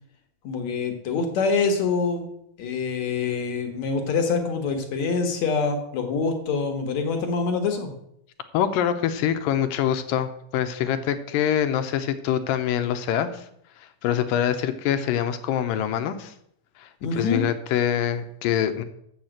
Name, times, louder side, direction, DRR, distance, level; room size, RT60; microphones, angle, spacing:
voice 1, 0.4-2.3 2.6-7.9 17.0-17.5, left 4 dB, 60° left, 4 dB, 2.3 m, -25 dB
voice 2, 8.5-13.5 13.8-16.3 16.8-18.8, left 9 dB, 80° left, 9 dB, 2.3 m, -25 dB
7.3 x 7.1 x 7.8 m, 0.74 s
omnidirectional pair, 4.2 m